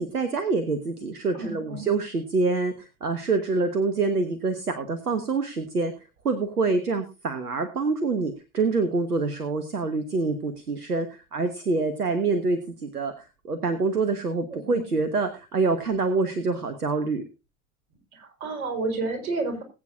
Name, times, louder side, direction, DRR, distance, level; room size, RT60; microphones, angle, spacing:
voice 1, 0.0-5.9 6.2-17.2, right 3 dB, 85° right, 10 dB, 1.3 m, -26 dB
voice 2, 1.3-1.9 14.5-14.8 18.1-19.6, right 3 dB, 70° right, 4 dB, 4.5 m, -31 dB
20.5 x 8.8 x 2.5 m, 0.30 s
figure-of-eight pair, 70°, 44 cm